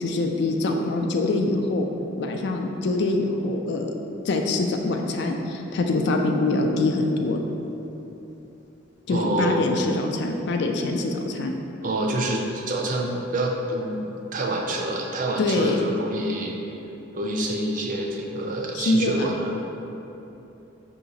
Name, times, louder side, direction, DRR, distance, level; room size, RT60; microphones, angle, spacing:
voice 1, 0.0-1.9 2.2-3.9 4.2-7.4 9.1-11.5 15.4-15.8 18.7-19.3, left 2 dB, 60° left, 3 dB, 0.3 m, -24 dB
voice 2, 9.1-9.7 11.8-16.5 17.1-19.5, right 1 dB, 45° right, 0 dB, 0.4 m, -27 dB
5.5 x 2.9 x 2.6 m, 3.0 s
head